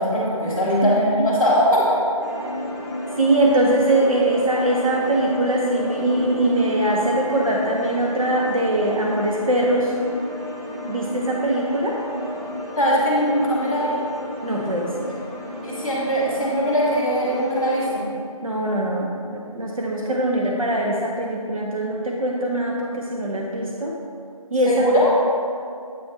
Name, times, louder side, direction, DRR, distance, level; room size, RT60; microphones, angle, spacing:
voice 1, 0.0-2.1 12.8-14.0 15.6-18.0 24.6-25.1, equal, 10° left, -13 dB, 1.0 m, -20 dB
sound 1, 2.2-17.9, left 1 dB, 25° right, 0.9 m, -33 dB
voice 2, 3.2-10.0 10.9-12.0 14.4-15.1 18.4-24.0 24.5-24.9, right 1 dB, 65° right, -2 dB, 0.8 m, -22 dB
7.8 x 3.4 x 4.2 m, 2.3 s
figure-of-eight pair, 165°, 19 cm